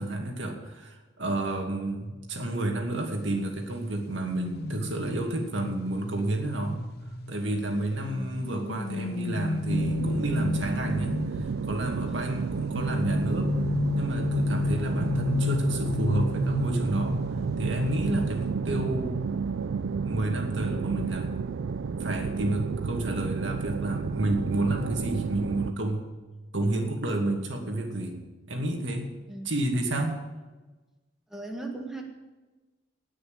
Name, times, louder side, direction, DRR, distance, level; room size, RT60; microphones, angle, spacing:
voice 1, 0.0-6.8 7.3-13.5 13.9-17.2 17.6-19.3 20.0-21.3 21.9-26.1 26.5-28.2 28.5-29.1 29.4-30.2, right 1 dB, 75° right, 2 dB, 2.4 m, -30 dB
sound 1, 4.2-7.8 8.4-11.7 12.7-17.9 18.2-18.5, left 2 dB, 55° left, 0.8 m, -31 dB
voice 2, 7.7-8.5 12.1-12.5 29.3-29.5 31.3-32.0, right 2 dB, ahead, 0 dB, 1.7 m, -39 dB
sound 2, 9.7-25.7, right 5 dB, 90° right, 0.4 m, -31 dB
19.0 x 6.4 x 7.8 m, 1.2 s
head